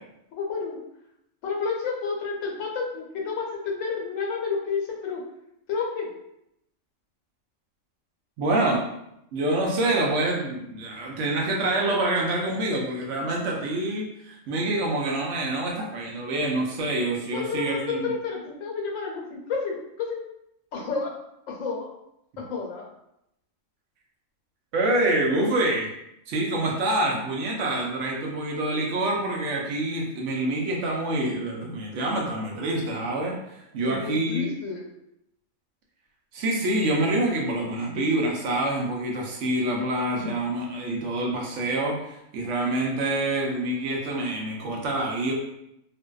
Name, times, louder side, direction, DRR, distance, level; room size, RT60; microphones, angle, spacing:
voice 1, 0.3-0.8 1.4-5.2 5.7-6.1 17.3-20.2 20.7-21.1 21.5-21.9 22.5-22.9 33.8-34.8, left 5 dB, 85° left, 0 dB, 1.0 m, -30 dB
voice 2, 8.4-8.9 9.3-18.2 24.7-25.9 26.3-34.5 36.3-45.3, right 1 dB, 70° right, -1 dB, 0.9 m, -26 dB
2.5 x 2.2 x 2.2 m, 0.81 s
omnidirectional pair, 1.4 m